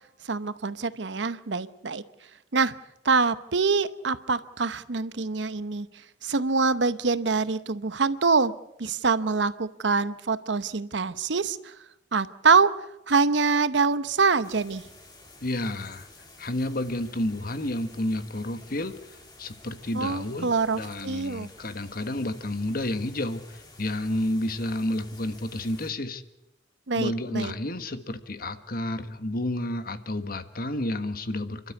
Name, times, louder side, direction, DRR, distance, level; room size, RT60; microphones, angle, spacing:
voice 1, 0.2-2.0 2.5-2.7 3.0-5.9 6.2-8.5 8.8-11.7 12.1-12.7 13.1-14.8 19.9-21.5 26.9-27.5, right 4 dB, 85° right, 14 dB, 0.9 m, -25 dB
sound 1, 14.4-25.9, left 2 dB, 25° left, 3.3 m, -51 dB
voice 2, 15.4-16.1 16.4-18.9 19.4-26.2 26.9-31.7, left 1 dB, 55° left, 10 dB, 1.4 m, -30 dB
29.0 x 12.5 x 8.4 m, 0.90 s
head